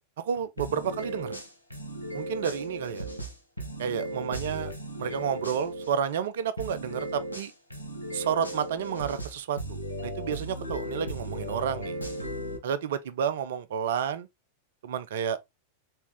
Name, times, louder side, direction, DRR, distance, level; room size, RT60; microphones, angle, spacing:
voice 1, 0.0-1.4 2.1-3.1 3.8-4.7 5.0-7.5 8.1-9.8 10.0-12.0 12.6-14.3 14.8-15.4, right 8 dB, 60° right, 0.5 m, -30 dB
sound 1, 0.6-5.9 6.6-12.6, right 1 dB, 85° right, 1.1 m, -36 dB
4.5 x 3.5 x 3.2 m
figure-of-eight pair, 90°, 0 cm